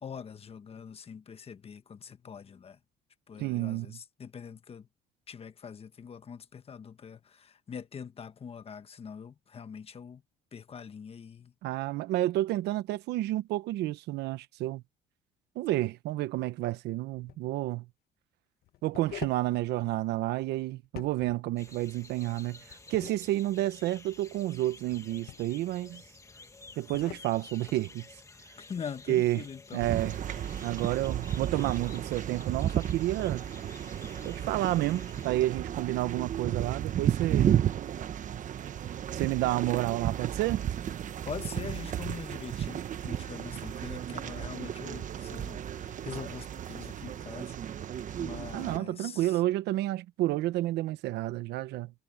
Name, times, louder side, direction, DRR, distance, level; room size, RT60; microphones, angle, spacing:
voice 1, 0.0-2.8 3.3-4.9 5.3-10.2 10.5-11.5 28.6-29.9 41.2-47.6 48.2-49.4, left 6 dB, 35° left, 1.4 m, -43 dB
voice 2, 3.4-4.0 11.6-14.8 15.5-17.8 18.8-26.0 26.8-28.1 29.1-29.4 29.7-30.2 30.6-33.5 34.2-37.5 39.1-40.6 48.5-51.9, right 16 dB, 80° right, 1.0 m, -30 dB
sound 1, 17.1-17.4 18.6-19.5 20.8-21.4 22.7-23.2 24.9-25.6 26.7-27.3, left 13 dB, 65° left, 1.2 m, -44 dB
sound 2, 21.6-35.3, left 3 dB, 20° left, 1.9 m, -52 dB
sound 3, 29.8-48.8, right 10 dB, 50° right, 1.2 m, -33 dB
cardioid pair, 110°, 17 cm